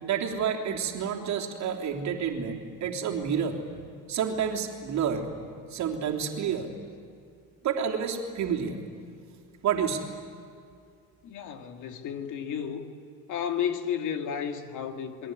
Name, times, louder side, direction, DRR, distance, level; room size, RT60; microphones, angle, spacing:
voice 1, 0.0-3.6 4.1-5.3 5.7-6.7 7.6-8.8 9.6-10.1, right 7 dB, 40° right, 1 dB, 3.3 m, -29 dB
voice 2, 11.2-12.9 13.3-15.3, left 8 dB, 45° left, 5 dB, 2.3 m, -32 dB
28.5 x 21.5 x 9.7 m, 2.3 s
cardioid pair, 160°, 42 cm